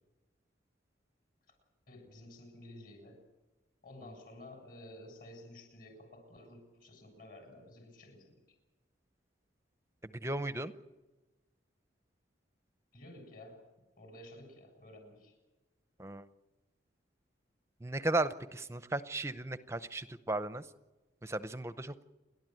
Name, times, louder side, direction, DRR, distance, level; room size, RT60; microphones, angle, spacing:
voice 1, 1.9-3.2 3.8-8.6 12.9-13.6 14.0-15.4, left 1 dB, 50° left, 5 dB, 7.4 m, -52 dB
voice 2, 10.2-10.7 16.0-16.2 17.8-20.6 21.2-22.0, right 2 dB, 15° right, 12 dB, 0.6 m, -35 dB
30.0 x 12.0 x 9.2 m, 1.1 s
head